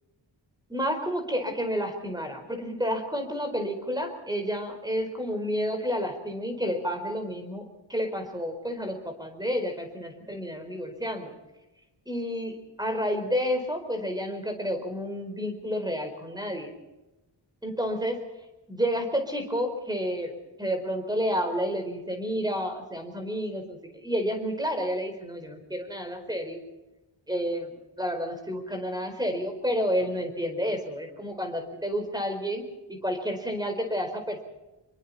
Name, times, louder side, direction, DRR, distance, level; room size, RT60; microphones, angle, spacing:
voice 1, 0.7-7.6 7.9-11.3 12.1-16.7 17.6-18.2 18.7-20.3 20.6-26.6 27.3-32.6 32.9-34.4, equal, 10° right, 5 dB, 4.7 m, -30 dB
26.5 x 23.0 x 4.3 m, 1.0 s
wide cardioid pair, 150°, 46 cm